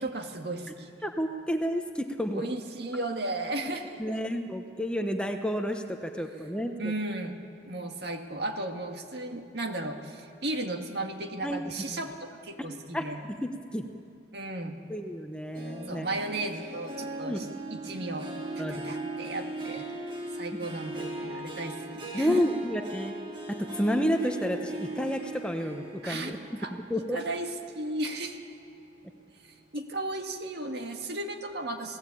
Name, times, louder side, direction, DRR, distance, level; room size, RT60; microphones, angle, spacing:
voice 1, 0.0-0.9 2.3-4.2 6.8-7.3 7.7-13.2 14.3-14.8 15.9-17.5 17.7-18.3 18.6-19.9 20.3-22.4 26.0-26.3 26.6-26.7 27.1-28.4 29.7-32.0, right 2 dB, 60° right, 4 dB, 2.0 m, -35 dB
voice 2, 1.0-2.5 4.0-6.9 11.4-11.6 11.9-12.0 12.6-12.7 12.9-13.1 13.4-13.8 14.9-16.1 17.3-17.5 18.6-19.1 22.1-23.1 23.5-26.4 26.7-27.2, equal, 5° left, 4 dB, 1.0 m, -30 dB
Harp, 15.5-28.3 28.7-29.1 29.6-29.7, right 2 dB, 25° right, 2.3 m, -39 dB
27.5 x 18.0 x 8.6 m, 2.5 s
head